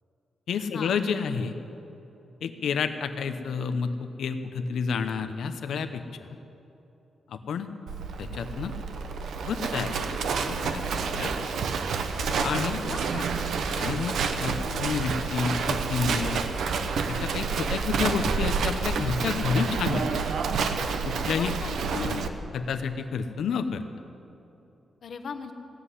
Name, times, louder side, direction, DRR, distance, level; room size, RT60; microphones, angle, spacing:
voice 1, 0.5-1.6 2.4-6.3 7.3-7.7 8.2-8.7 9.5-10.2 10.5-11.3 12.4-12.8 13.8-16.4 17.1-20.1 21.0-21.5 21.9-23.8, left 6 dB, 85° left, 9 dB, 0.9 m, -30 dB
Livestock farm animals working animals, 7.9-22.3, right 5 dB, 80° right, 0.8 m, -29 dB
voice 2, 12.2-13.3 21.3-21.8 25.0-25.5, left 5 dB, 55° left, 7 dB, 1.1 m, -39 dB
16.0 x 7.7 x 9.9 m, 3.0 s
wide cardioid pair, 150°, 0 cm